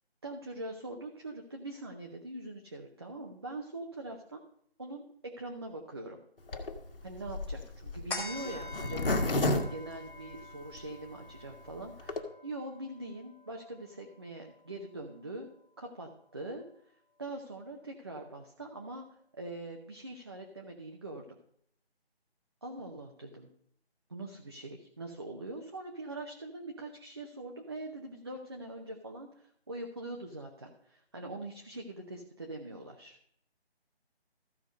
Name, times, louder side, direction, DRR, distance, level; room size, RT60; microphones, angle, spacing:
voice 1, 0.2-4.4 4.8-6.2 7.0-21.4 22.6-23.5 24.1-33.2, right 2 dB, 25° right, 2 dB, 0.7 m, -43 dB
Zipper (clothing), 6.5-10.8 11.3-11.4 11.5-11.6 11.9-12.2, left 2 dB, 55° left, 1.7 m, -31 dB
sound 1, 8.1-14.9 15.3-15.4, left 2 dB, 5° left, 1.2 m, -46 dB
14.5 x 4.9 x 5.1 m, 0.68 s
figure-of-eight pair, 165°, 32 cm